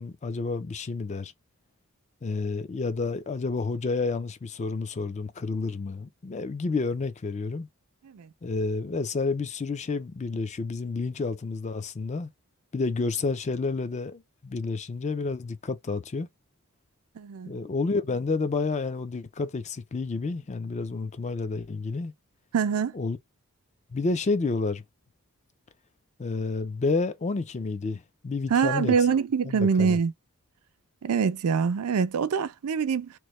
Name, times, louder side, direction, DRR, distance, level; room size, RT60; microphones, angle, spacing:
voice 1, 0.0-1.3 2.2-7.7 8.4-12.3 12.7-16.3 17.4-22.1 22.9-23.2 23.9-24.8 26.2-28.9 29.5-30.0, left 3 dB, 30° left, 0.4 m, -30 dB
voice 2, 17.2-17.5 22.5-22.9 28.5-30.1 31.0-33.1, right 6 dB, 80° right, 0.4 m, -24 dB
3.0 x 2.1 x 3.1 m
head